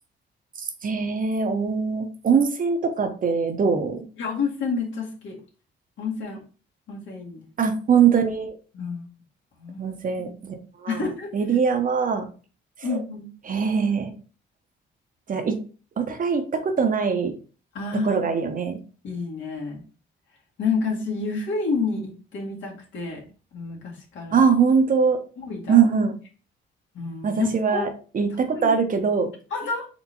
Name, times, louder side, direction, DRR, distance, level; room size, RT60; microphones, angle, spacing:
voice 1, 0.6-4.1 7.6-8.5 9.8-11.1 11.3-12.3 12.8-13.0 13.4-14.1 15.3-15.6 16.0-17.3 18.0-18.8 24.3-25.2 25.7-26.1 27.2-27.9 28.1-29.3, right 6 dB, 45° right, 6 dB, 0.8 m, -22 dB
voice 2, 4.2-5.4 6.0-6.4 6.9-7.5 8.7-9.1 9.6-9.9 10.9-11.3 12.8-13.3 17.7-18.2 19.0-19.8 20.6-23.3 23.5-24.4 25.4-25.9 26.9-27.9 28.5-28.7 29.5-29.9, left 4 dB, 75° left, -3 dB, 1.9 m, -29 dB
4.4 x 3.5 x 2.7 m, 0.38 s
cardioid pair, 90°, 20 cm